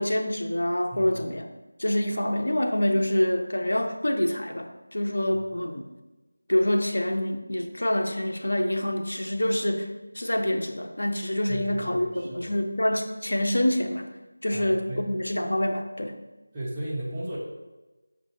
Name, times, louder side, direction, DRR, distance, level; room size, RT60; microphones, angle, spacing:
voice 1, 0.0-1.5 1.8-5.8 6.5-14.1 14.4-16.2, left 1 dB, 80° left, 4 dB, 0.4 m, -26 dB
voice 2, 0.9-1.2 11.5-12.5 14.5-15.1 16.5-17.4, right 1 dB, 10° right, -8 dB, 0.6 m, -35 dB
5.3 x 2.3 x 3.0 m, 1.1 s
figure-of-eight pair, 175°, 0 cm